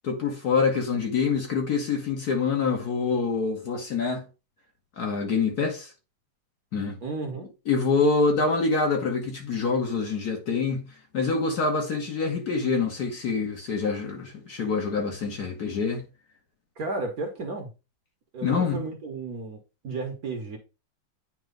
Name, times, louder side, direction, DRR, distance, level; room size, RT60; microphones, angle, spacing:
voice 1, 0.0-4.3 5.0-5.9 6.7-7.0 7.6-10.9 11.1-16.0 18.4-18.8, left 4 dB, 50° left, 1.7 m, -26 dB
voice 2, 7.0-7.5 16.8-17.7 18.3-20.6, right 3 dB, 50° right, 1.4 m, -33 dB
9.2 x 3.1 x 3.8 m
omnidirectional pair, 2.3 m